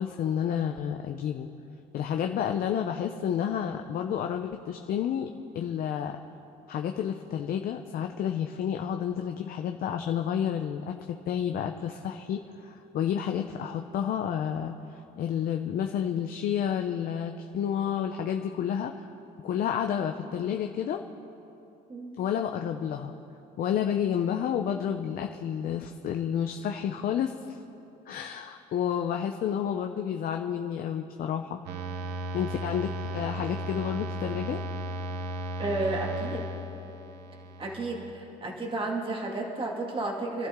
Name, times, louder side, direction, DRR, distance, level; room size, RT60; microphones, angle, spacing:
voice 1, 0.0-1.5 1.9-6.2 6.7-19.1 19.4-21.0 22.2-23.1 23.6-27.6 28.1-31.6 32.3-34.6, left 9 dB, 60° left, 5 dB, 0.7 m, -30 dB
sound 1, 31.7-38.1, equal, 75° right, 1.1 m, -35 dB
voice 2, 35.6-36.6 37.6-40.5, right 2 dB, 30° right, -1 dB, 2.3 m, -32 dB
27.5 x 12.0 x 3.8 m, 2.9 s
cardioid pair, 110°, 17 cm